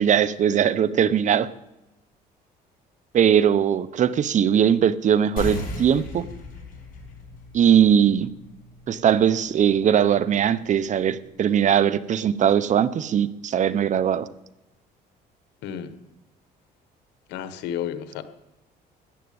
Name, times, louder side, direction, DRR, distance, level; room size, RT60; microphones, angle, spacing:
voice 1, 0.0-1.5 3.1-6.3 7.5-8.3 8.9-14.3, right 9 dB, 45° right, 16 dB, 0.8 m, -20 dB
sound 1, 5.4-10.5, left 2 dB, 55° left, 6.1 m, -37 dB
voice 2, 15.6-16.0 17.3-18.2, left 9 dB, 90° left, 11 dB, 1.3 m, -31 dB
14.5 x 9.2 x 8.7 m, 0.96 s
cardioid pair, 110°, 17 cm